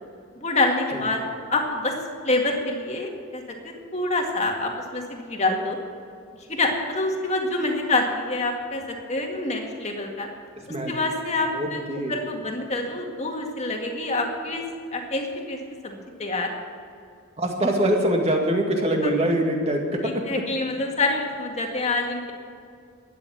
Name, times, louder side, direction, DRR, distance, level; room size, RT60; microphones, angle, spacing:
voice 1, 0.4-1.2 1.5-2.0 2.2-5.8 6.5-10.3 10.9-11.8 12.1-14.6 14.9-15.6 15.8-16.5 19.0-19.1 20.0-22.3, left 2 dB, 35° left, 2 dB, 1.9 m, -26 dB
voice 2, 11.5-12.2 17.4-20.2, right 1 dB, 30° right, 1 dB, 2.0 m, -24 dB
13.0 x 9.5 x 8.6 m, 2.4 s
head